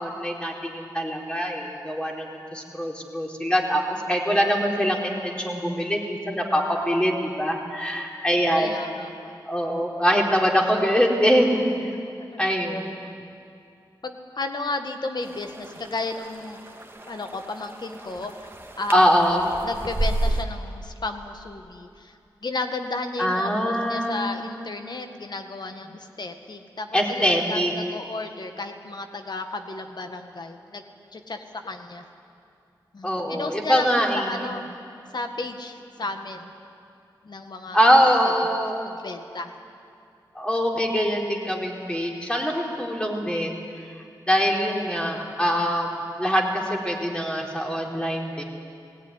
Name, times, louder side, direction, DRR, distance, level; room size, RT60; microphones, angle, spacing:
voice 1, 0.0-3.8 4.1-8.7 9.5-11.6 12.4-13.0 18.9-19.5 23.2-24.4 26.9-27.7 33.0-34.5 37.7-38.8 40.4-43.9 44.3-48.4, equal, 10° left, -1 dB, 4.0 m, -23 dB
voice 2, 8.5-9.4 12.0-12.3 14.0-16.6 17.1-18.5 18.8-19.1 19.6-22.2 22.4-30.8 31.1-32.0 32.9-34.6 35.1-36.5 37.2-37.8 38.8-39.5, left 3 dB, 55° left, 6 dB, 1.8 m, -33 dB
sound 1, 15.2-20.4, right 1 dB, 25° right, 1.9 m, -32 dB
18.0 x 17.0 x 10.0 m, 2.5 s
cardioid pair, 50°, 8 cm